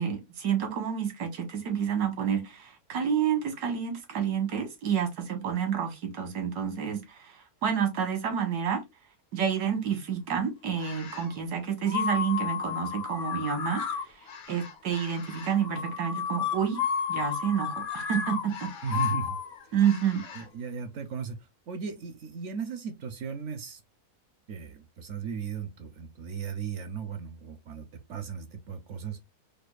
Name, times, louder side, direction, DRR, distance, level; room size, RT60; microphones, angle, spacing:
voice 1, 0.0-8.8 9.3-14.1 14.5-16.8 17.1-18.7 19.7-20.2, right 8 dB, 85° right, 1.6 m, -29 dB
sound 1, 10.7-11.3 11.8-20.4, left 7 dB, 60° left, 1.1 m, -33 dB
voice 2, 18.8-19.4 20.3-21.4 21.7-23.8 24.5-29.3, right 6 dB, 70° right, 0.7 m, -36 dB
5.1 x 2.2 x 2.2 m
omnidirectional pair, 1.7 m